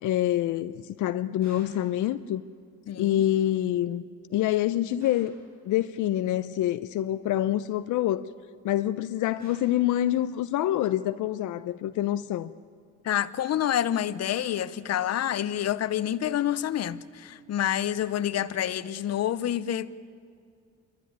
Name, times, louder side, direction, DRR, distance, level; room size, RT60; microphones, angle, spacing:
voice 1, 0.0-2.4 3.0-4.0 4.3-5.4 5.6-8.3 8.6-12.5, left 13 dB, 80° left, 0.6 m, -26 dB
sound 1, 1.4-2.0 5.0-5.5 9.4-9.9 14.3-14.8, right 2 dB, 65° right, 7.3 m, -54 dB
voice 2, 2.9-3.2 13.0-19.9, left 11 dB, 55° left, 0.8 m, -28 dB
27.5 x 12.0 x 9.5 m
cardioid pair, 90°, 30 cm